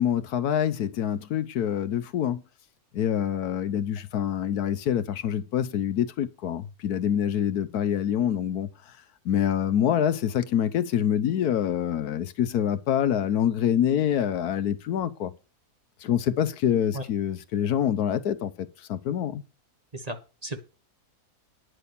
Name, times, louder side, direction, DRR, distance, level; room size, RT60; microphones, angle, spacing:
voice 1, 0.0-2.4 2.9-8.7 9.2-15.3 16.0-19.4, left 9 dB, 75° left, 1.3 m, -26 dB
voice 2, 19.9-20.6, right 1 dB, 25° right, 1.3 m, -35 dB
10.0 x 6.3 x 6.9 m
omnidirectional pair, 1.7 m